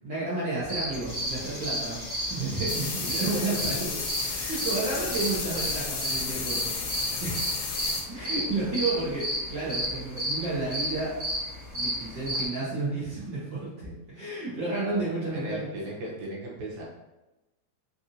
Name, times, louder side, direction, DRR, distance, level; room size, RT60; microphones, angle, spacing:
voice 1, 0.0-7.6 8.1-11.2 11.7-15.7, right 2 dB, 65° right, -9 dB, 1.1 m, -32 dB
sound 1, 0.6-12.4, equal, 30° right, 0.7 m, -32 dB
sound 2, 1.1-9.4, left 2 dB, 55° left, 1.4 m, -44 dB
sound 3, 2.7-8.0, left 5 dB, 80° left, 1.4 m, -33 dB
voice 2, 15.3-16.8, right 1 dB, 85° right, -3 dB, 2.3 m, -37 dB
5.2 x 2.5 x 2.7 m, 1.0 s
omnidirectional pair, 3.3 m